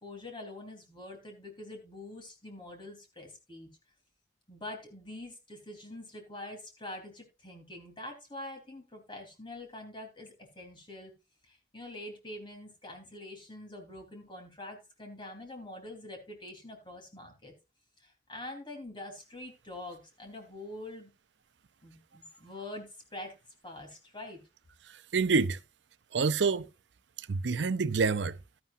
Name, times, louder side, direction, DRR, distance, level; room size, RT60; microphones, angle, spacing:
voice 1, 0.0-3.7 4.5-11.1 11.4-17.5 18.0-21.1 21.8-23.3 23.6-24.4, left 1 dB, 25° left, 3.7 m, -45 dB
voice 2, 25.1-25.6 26.1-26.7 27.3-28.4, right 4 dB, 75° right, 0.6 m, -27 dB
12.5 x 11.0 x 2.6 m
head